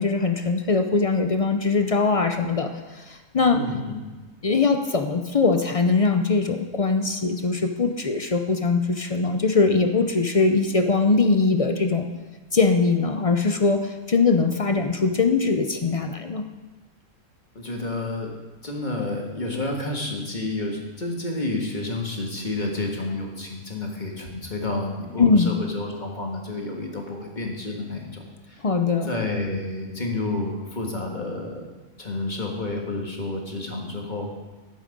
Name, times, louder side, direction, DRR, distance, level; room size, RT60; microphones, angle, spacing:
voice 1, 0.0-3.6 4.4-12.1 12.5-16.4 25.2-25.5 28.6-29.1, left 4 dB, 50° left, 6 dB, 0.4 m, -21 dB
voice 2, 3.5-4.0 17.5-18.3 18.6-28.6 29.0-31.7 32.0-34.3, left 2 dB, 35° left, 0 dB, 1.7 m, -30 dB
12.0 x 8.2 x 5.2 m, 1.3 s
omnidirectional pair, 1.5 m